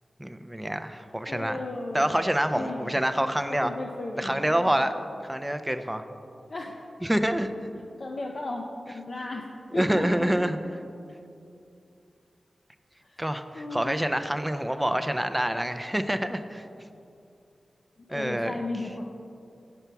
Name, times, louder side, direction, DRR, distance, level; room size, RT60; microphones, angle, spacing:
voice 1, 0.2-1.6 1.9-3.7 4.2-4.9 5.3-6.1 7.0-7.5 9.7-10.6 13.2-16.7 18.1-18.5, equal, 10° right, 8 dB, 0.4 m, -27 dB
voice 2, 1.3-2.2 2.5-3.0 3.5-4.9 6.5-6.8 8.0-10.3 13.0-13.2 13.5-14.0 18.1-19.0, left 2 dB, 55° left, 0 dB, 0.5 m, -35 dB
6.8 x 5.7 x 4.5 m, 2.6 s
wide cardioid pair, 75°, 0 cm